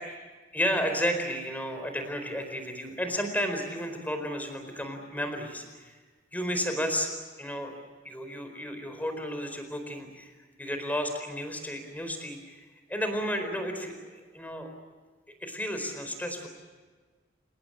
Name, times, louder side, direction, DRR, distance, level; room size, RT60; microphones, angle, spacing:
voice 1, 0.5-6.0 6.3-7.1 7.4-7.7 8.0-14.7 15.4-16.5, equal, 10° left, 6 dB, 4.5 m, -32 dB
30.0 x 18.0 x 8.7 m, 1.4 s
head